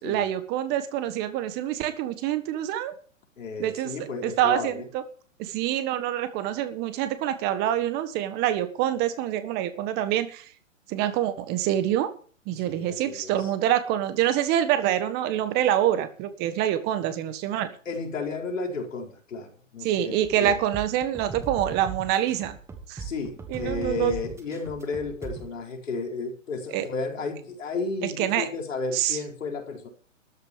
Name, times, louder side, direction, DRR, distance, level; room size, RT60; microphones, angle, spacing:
voice 1, 0.0-2.9 3.6-5.0 5.4-10.5 10.9-12.1 12.5-17.7 19.8-22.6 22.9-23.0 23.5-24.1 26.7-26.8 28.0-28.5 28.9-29.2, right 11 dB, 25° right, 1.6 m, -26 dB
voice 2, 3.4-4.9 12.6-13.5 17.8-20.6 23.0-29.9, left 4 dB, 80° left, 4.5 m, -33 dB
sound 1, 20.2-25.5, right 5 dB, 5° right, 1.2 m, -39 dB
13.5 x 6.6 x 9.5 m
hypercardioid pair, 145°, 38 cm